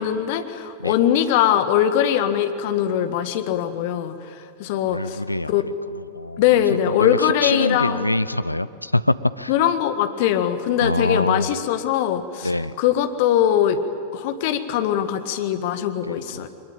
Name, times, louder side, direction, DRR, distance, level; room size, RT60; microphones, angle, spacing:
voice 1, 0.0-4.1 4.6-5.2 5.5-5.6 6.4-8.0 9.5-12.5 12.8-13.8 14.1-16.5, left 10 dB, 50° left, 10 dB, 1.5 m, -21 dB
voice 2, 4.8-9.5 10.8-11.5 12.4-12.8 16.0-16.5, left 1 dB, 85° left, 16 dB, 0.5 m, -25 dB
23.5 x 21.0 x 9.0 m, 2.6 s
figure-of-eight pair, 90°, 0 cm